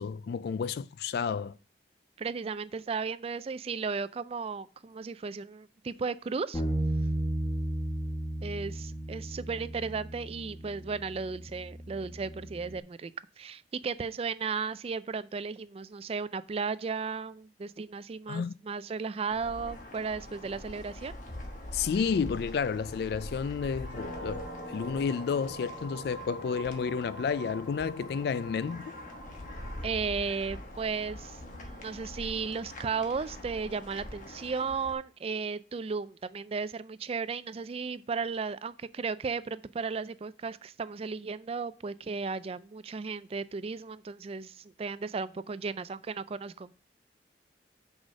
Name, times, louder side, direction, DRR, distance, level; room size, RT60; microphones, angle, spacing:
voice 1, 0.0-1.5 18.3-18.5 21.7-28.9, left 6 dB, 60° left, 0.3 m, -31 dB
voice 2, 2.2-6.6 8.4-13.1 13.4-21.2 29.8-46.7, right 5 dB, 35° right, 0.3 m, -35 dB
Bass guitar, 6.5-12.8, right 1 dB, 20° left, 1.3 m, -34 dB
sound 1, 19.3-34.9, left 1 dB, 45° left, 1.3 m, -43 dB
sound 2, 21.5-29.9, right 2 dB, 5° right, 2.0 m, -48 dB
6.2 x 4.9 x 6.3 m
head